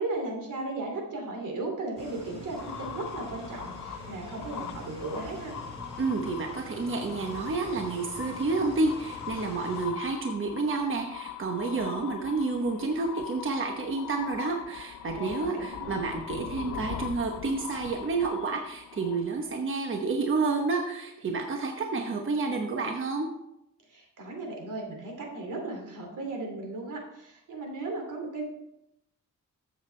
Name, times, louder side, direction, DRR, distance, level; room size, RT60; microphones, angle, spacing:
voice 1, 0.0-5.6 15.1-16.0 23.9-28.5, right 2 dB, 80° right, 2 dB, 2.6 m, -36 dB
sound 1, 2.0-9.9, equal, 20° right, 4.1 m, -45 dB
sound 2, 2.5-19.6, left 10 dB, 75° left, 0.6 m, -41 dB
voice 2, 6.0-23.3, right 3 dB, 40° right, 3 dB, 1.0 m, -30 dB
13.5 x 7.4 x 3.3 m, 0.84 s
wide cardioid pair, 130°, 31 cm